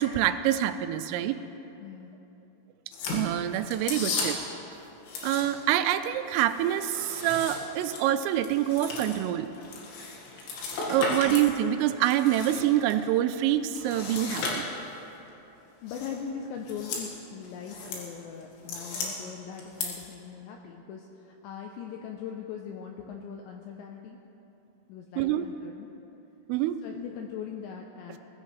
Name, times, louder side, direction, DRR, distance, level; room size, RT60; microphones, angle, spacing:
voice 1, 0.0-1.4 3.1-4.4 5.2-9.5 10.9-14.6 25.2-25.5 26.5-26.8, right 12 dB, 85° right, 10 dB, 3.2 m, -26 dB
voice 2, 1.8-2.2 15.8-24.2 24.9-25.9 26.8-28.2, left 7 dB, 90° left, 2 dB, 2.6 m, -40 dB
sound 1, 2.9-4.6 5.0-5.8 6.1-11.5 11.9-13.0 13.7-15.0 15.9-16.2 16.6-17.1 17.4-18.0 18.4-19.1 19.6-19.9, left 3 dB, 70° left, 4.1 m, -35 dB
20.5 x 15.0 x 3.2 m, 2.9 s
omnidirectional pair, 5.9 m